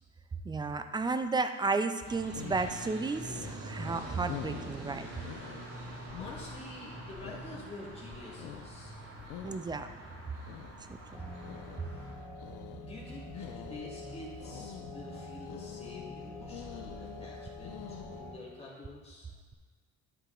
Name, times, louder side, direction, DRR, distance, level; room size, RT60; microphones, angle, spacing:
voice 1, 0.4-5.1 9.4-9.9 10.9-11.2, right 3 dB, 15° right, 9 dB, 0.4 m, -33 dB
sound 1, 2.0-18.2, left 11 dB, 75° left, 0.6 m, -48 dB
sound 2, 2.0-12.1, right 1 dB, 55° right, 2.4 m, -45 dB
voice 2, 5.6-9.0 11.8-12.1 12.8-19.3, left 2 dB, 20° left, -5 dB, 2.3 m, -48 dB
sound 3, 11.1-18.3, left 2 dB, 55° left, 2.5 m, -45 dB
11.0 x 4.7 x 3.9 m, 1.5 s
cardioid pair, 120°, 31 cm